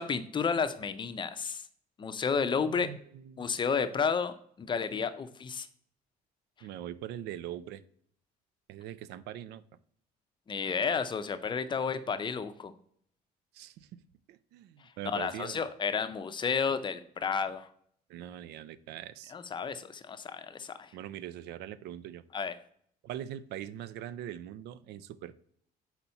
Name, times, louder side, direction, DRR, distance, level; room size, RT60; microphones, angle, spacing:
voice 1, 0.0-1.7 2.0-2.9 3.4-5.7 10.5-12.7 15.0-17.7 19.3-20.9 22.3-22.5, left 6 dB, 30° left, 11 dB, 0.5 m, -31 dB
voice 2, 2.6-3.5 6.6-7.8 8.7-9.6 13.5-14.0 14.3-15.7 18.1-19.3 20.9-22.2 23.0-25.3, right 11 dB, 80° right, 17 dB, 0.4 m, -42 dB
4.2 x 4.1 x 5.6 m, 0.63 s
cardioid pair, 110°, 17 cm